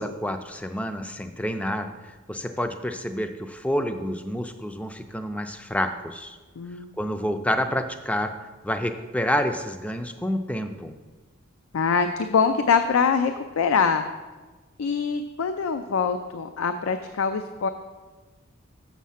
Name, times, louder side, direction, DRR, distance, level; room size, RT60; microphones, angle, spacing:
voice 1, 0.0-6.4 7.0-8.4 8.6-11.0, equal, 5° left, 8 dB, 0.4 m, -28 dB
voice 2, 6.6-6.9 11.7-14.1 14.8-17.7, left 5 dB, 80° left, 8 dB, 0.4 m, -24 dB
7.3 x 6.4 x 5.6 m, 1.3 s
head